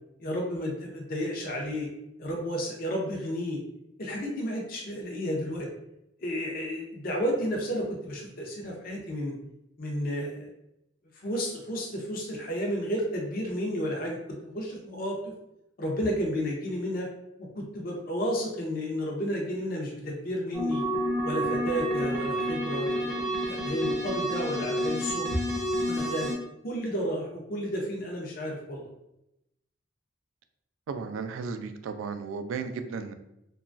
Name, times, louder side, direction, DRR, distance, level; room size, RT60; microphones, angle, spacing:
voice 1, 0.2-1.9 2.2-3.6 4.0-5.7 6.2-9.3 9.8-10.5 11.2-15.2 15.8-17.1 17.4-20.8 21.2-23.1 23.4-25.4 25.8-26.3 26.6-28.9, equal, 50° left, -1 dB, 0.5 m, -32 dB
sound 1, 20.5-26.3, equal, 5° right, 0.6 m, -29 dB
voice 2, 30.9-33.1, right 5 dB, 90° right, 9 dB, 0.3 m, -34 dB
2.9 x 2.3 x 2.5 m, 0.85 s
head